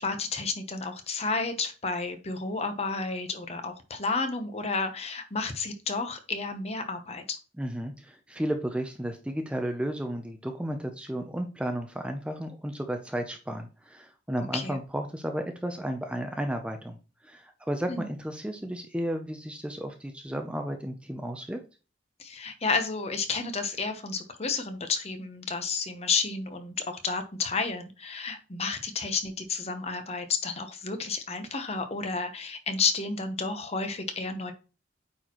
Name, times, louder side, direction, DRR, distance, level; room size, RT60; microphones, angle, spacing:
voice 1, 0.0-7.4 14.5-14.8 17.9-18.0 22.2-34.5, left 4 dB, 35° left, 7 dB, 0.9 m, -31 dB
voice 2, 7.6-17.0 17.2-21.6, right 1 dB, 5° right, 5 dB, 0.5 m, -33 dB
8.9 x 4.2 x 3.0 m, 0.33 s
head